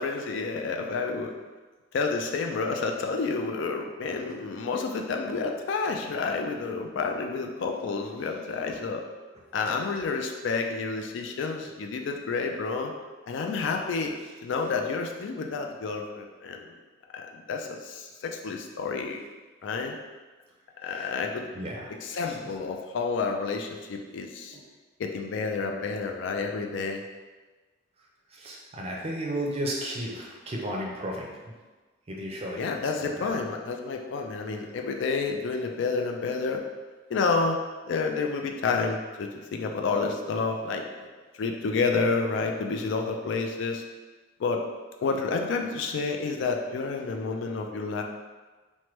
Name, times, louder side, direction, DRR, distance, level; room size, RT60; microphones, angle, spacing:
voice 1, 0.0-1.3 1.9-9.0 9.5-12.9 13.3-14.1 14.4-16.8 17.1-19.2 19.6-20.0 20.8-21.5 21.9-24.6 25.0-27.0 32.5-36.6 37.1-37.6 37.9-41.1 41.4-43.8 44.4-44.6 45.0-48.0, left 4 dB, 70° left, 3 dB, 0.3 m, -29 dB
voice 2, 20.8-21.1 21.5-21.9 28.4-31.3 32.1-33.3, right 1 dB, 30° right, -2 dB, 0.4 m, -34 dB
3.1 x 2.1 x 3.0 m, 1.3 s
head